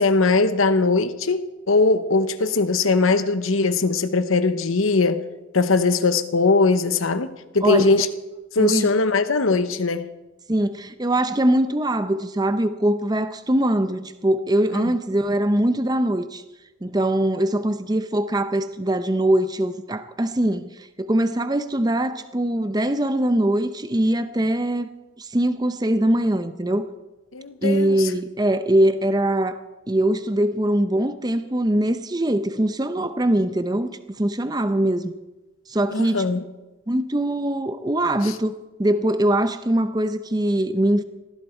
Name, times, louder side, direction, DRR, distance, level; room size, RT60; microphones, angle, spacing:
voice 1, 0.0-5.2 5.5-7.3 7.5-8.1 8.5-10.1 14.7-14.9 27.3-28.1 35.9-36.4 38.2-38.4, left 3 dB, 85° left, 1.0 m, -20 dB
voice 2, 8.6-8.9 10.5-16.4 16.8-24.9 25.2-26.9 27.6-29.6 29.9-35.1 35.7-36.2 36.9-38.5 38.8-41.0, right 1 dB, 20° right, 0.6 m, -22 dB
19.0 x 15.0 x 4.5 m
head